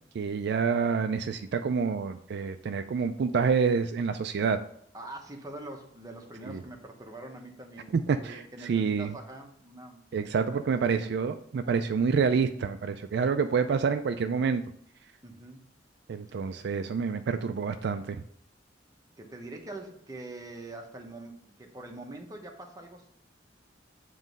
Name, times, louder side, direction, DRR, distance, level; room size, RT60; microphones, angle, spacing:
voice 1, 0.1-4.6 6.5-6.6 7.9-8.4 8.7-9.1 10.1-14.6 16.1-18.2, right 5 dB, 60° right, 8 dB, 0.3 m, -27 dB
voice 2, 4.9-10.5 11.0-11.1 15.2-15.6 19.2-23.1, right 2 dB, 20° right, 2 dB, 0.9 m, -44 dB
7.5 x 3.1 x 5.2 m, 0.65 s
head